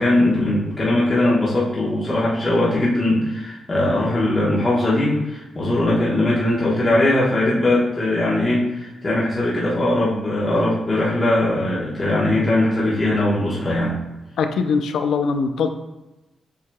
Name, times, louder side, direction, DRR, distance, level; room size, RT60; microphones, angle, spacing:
voice 1, 0.0-14.0, left 1 dB, 30° left, -7 dB, 1.2 m, -20 dB
voice 2, 14.4-15.7, left 5 dB, 80° left, 7 dB, 0.4 m, -21 dB
7.3 x 2.8 x 2.3 m, 1.0 s
cardioid pair, 85°, 0 cm